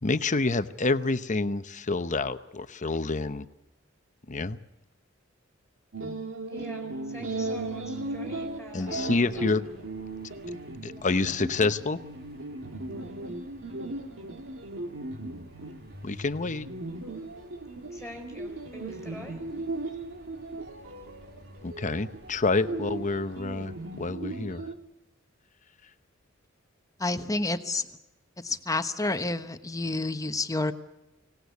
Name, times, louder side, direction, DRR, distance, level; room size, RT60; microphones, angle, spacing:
voice 1, 0.0-3.5 4.3-4.6 8.7-9.6 10.8-12.0 16.0-16.7 21.6-24.6, left 3 dB, 40° left, 11 dB, 0.9 m, -28 dB
sound 1, 5.9-24.7, right 2 dB, 70° right, 2.0 m, -37 dB
voice 2, 6.5-9.5 10.9-11.1 17.9-19.4, equal, ahead, 1 dB, 4.3 m, -44 dB
sound 2, 7.3-24.2, right 1 dB, 55° right, 7.5 m, -56 dB
voice 3, 27.0-27.8 28.4-30.7, left 2 dB, 15° left, 9 dB, 1.1 m, -29 dB
24.5 x 18.0 x 8.3 m, 0.97 s
head